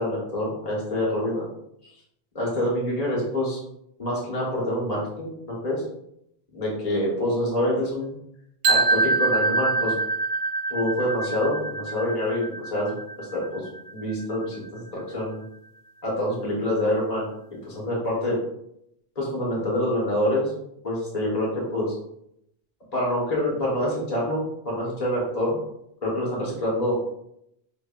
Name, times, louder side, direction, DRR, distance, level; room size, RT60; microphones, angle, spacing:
voice 1, 0.0-1.4 2.3-3.6 4.0-5.8 6.5-8.1 8.7-10.0 10.7-15.4 16.0-17.3 17.6-18.4 19.1-20.5 20.8-21.9 22.9-25.6 26.0-26.9, left 1 dB, 40° left, -4 dB, 1.3 m, -26 dB
sound 1, 8.6-14.6, right 3 dB, 80° right, 1.2 m, -25 dB
5.3 x 3.0 x 2.4 m, 0.76 s
omnidirectional pair, 1.1 m